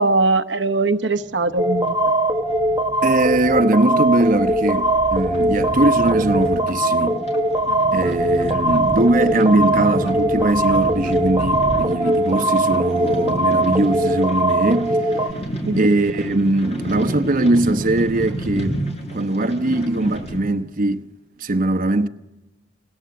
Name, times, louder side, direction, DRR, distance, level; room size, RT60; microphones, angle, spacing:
voice 1, 0.0-2.0 15.7-15.9, right 3 dB, 75° right, 1.0 m, -20 dB
sound 1, 1.1-20.4, equal, 35° left, 6.7 m, -31 dB
sound 2, 1.6-15.3, right 1 dB, 20° right, 1.2 m, -20 dB
voice 2, 3.0-7.2 7.9-15.0 15.8-18.8 19.1-21.1 21.4-22.1, right 2 dB, 50° right, 1.0 m, -20 dB
sound 3, 5.3-13.0, equal, 70° left, 6.2 m, -39 dB
29.5 x 21.0 x 7.8 m
head